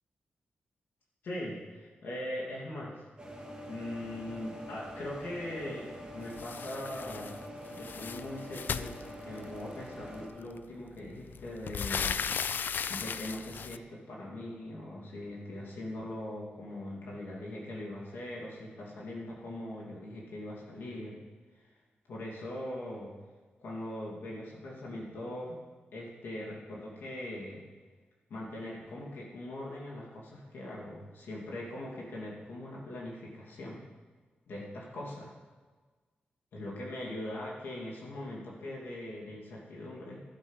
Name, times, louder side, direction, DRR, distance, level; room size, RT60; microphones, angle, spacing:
voice 1, 1.2-3.0 3.7-5.9 6.1-7.4 7.7-12.2 12.9-21.2 21.5-21.6 22.1-23.1 23.6-25.6 25.9-27.6 28.3-33.8 34.5-35.3 36.5-40.2, left 1 dB, 85° left, -4 dB, 2.5 m, -41 dB
sound 1, 3.2-10.3, equal, 25° right, 2.5 m, -45 dB
sound 2, 6.4-7.4 7.7-9.6 10.6-10.7 11.0-13.8, left 7 dB, 65° left, 0.3 m, -36 dB
13.0 x 6.6 x 5.6 m, 1.4 s
cardioid pair, 85°, 4 cm